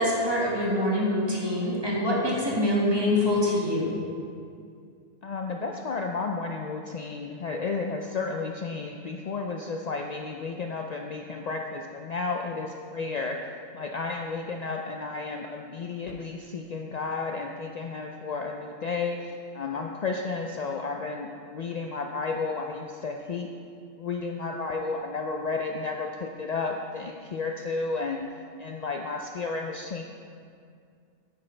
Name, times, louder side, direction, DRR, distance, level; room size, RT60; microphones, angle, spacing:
voice 1, 0.0-4.0, left 1 dB, 20° right, -5 dB, 1.8 m, -25 dB
voice 2, 5.2-13.4 13.7-23.5 24.0-28.3 28.6-30.0, left 4 dB, 70° left, 2 dB, 0.4 m, -32 dB
10.0 x 9.2 x 3.3 m, 2.3 s
omnidirectional pair, 1.3 m